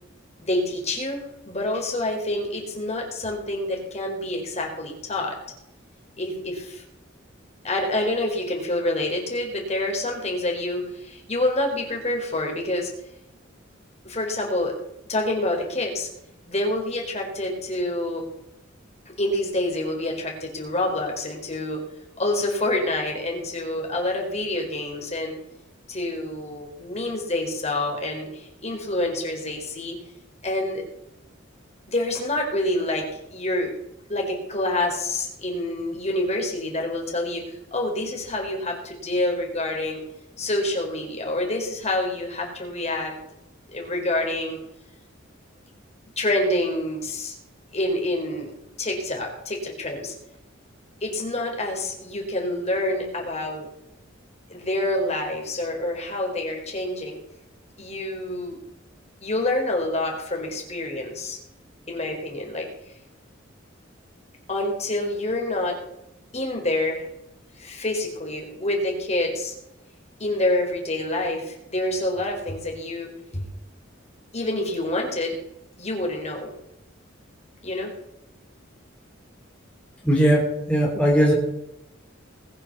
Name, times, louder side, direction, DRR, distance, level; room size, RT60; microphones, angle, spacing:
voice 1, 0.4-5.4 6.2-6.8 7.6-12.9 14.0-14.7 15.1-16.1 16.5-18.2 19.2-21.8 22.2-25.3 25.9-30.0 30.4-30.8 31.9-33.1 33.3-33.7 34.1-40.0 40.4-43.2 43.7-44.6 46.2-47.4 47.7-48.5 48.8-50.1 51.0-53.7 54.5-57.2 57.8-58.6 59.2-61.4 61.9-62.7 64.5-65.8 66.3-67.1 67.6-69.5 70.2-73.4 74.3-75.4 75.8-76.5 77.6-77.9, left 1 dB, 35° left, 0 dB, 4.3 m, -27 dB
voice 2, 80.0-81.3, equal, 5° left, -3 dB, 3.2 m, -19 dB
20.5 x 7.1 x 7.0 m, 0.83 s
head